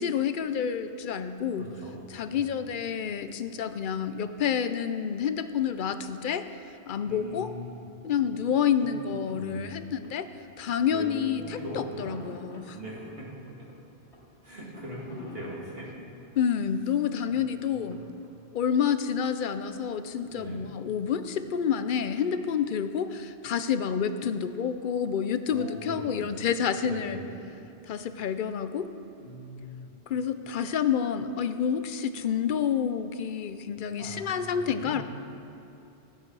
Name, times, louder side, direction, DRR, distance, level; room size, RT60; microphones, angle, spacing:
voice 1, 0.0-1.7 2.1-6.5 6.9-7.5 8.0-10.3 10.6-12.8 16.4-18.0 18.5-27.2 27.9-28.9 30.1-35.0, left 7 dB, 55° left, 11 dB, 0.6 m, -29 dB
voice 2, 1.6-2.6 7.0-7.8 8.7-8.9 9.3-9.9 10.9-12.2 12.7-13.0 14.4-15.9 17.2-17.6 20.3-20.6 25.5-27.4 29.2-29.9 33.9-35.0, right 1 dB, 60° right, -6 dB, 2.9 m, -41 dB
sound 1, 9.2-9.6 10.0-10.1 10.5-10.6 11.6-17.6 17.9-18.9, left 1 dB, 80° left, 2.4 m, -48 dB
14.0 x 9.0 x 4.7 m, 2.9 s
omnidirectional pair, 1.1 m